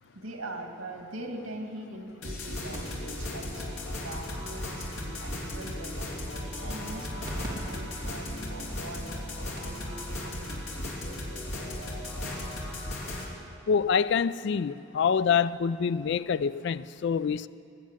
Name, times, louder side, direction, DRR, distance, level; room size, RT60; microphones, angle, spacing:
voice 1, 0.1-10.6, right 1 dB, 80° right, 2 dB, 2.2 m, -42 dB
sound 1, 2.2-13.2, left 1 dB, 85° left, 3.1 m, -36 dB
sound 2, 2.7-7.5 7.8-7.9 8.6-8.7 9.2-9.3 9.6-9.8 11.1-11.2, right 1 dB, 20° right, 3.0 m, -47 dB
voice 2, 13.7-17.5, left 6 dB, 55° left, 16 dB, 0.3 m, -26 dB
20.5 x 7.4 x 8.9 m, 2.7 s
head